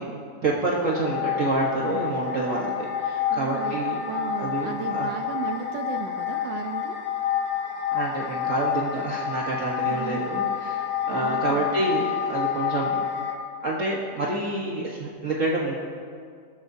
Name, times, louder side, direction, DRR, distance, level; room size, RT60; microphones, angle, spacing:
voice 1, 0.0-4.0 4.4-5.1 7.9-13.0 13.6-15.7, right 2 dB, 45° right, -4 dB, 1.4 m, -28 dB
sound 1, 0.9-13.3, left 8 dB, 65° left, 2.0 m, -29 dB
voice 2, 3.3-7.0 9.9-10.2 11.2-11.7, right 7 dB, 75° right, 4 dB, 1.4 m, -35 dB
20.5 x 14.5 x 2.7 m, 2.2 s
omnidirectional pair, 2.0 m